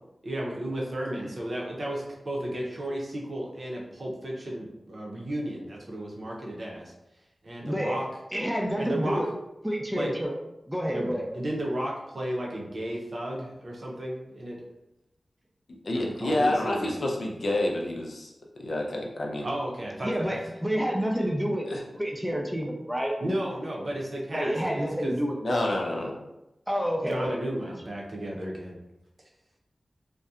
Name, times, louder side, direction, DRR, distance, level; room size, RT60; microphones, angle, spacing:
voice 1, 0.2-6.9 7.4-8.1 8.7-9.2 10.0-10.1 10.9-14.6 15.9-17.0 19.4-20.4 23.2-25.2 27.1-28.8, right 1 dB, 60° right, -2 dB, 0.6 m, -33 dB
voice 2, 7.6-8.0 8.3-9.3 9.6-10.3 10.7-11.3 20.0-21.7 22.0-23.1 24.3-25.4 26.7-27.3, equal, 5° right, 0 dB, 0.5 m, -28 dB
voice 3, 15.8-18.3 18.6-19.5 21.7-21.8 25.4-26.1, left 1 dB, 70° left, 0 dB, 0.4 m, -28 dB
2.7 x 2.1 x 2.3 m, 0.92 s
cardioid pair, 55°, 0 cm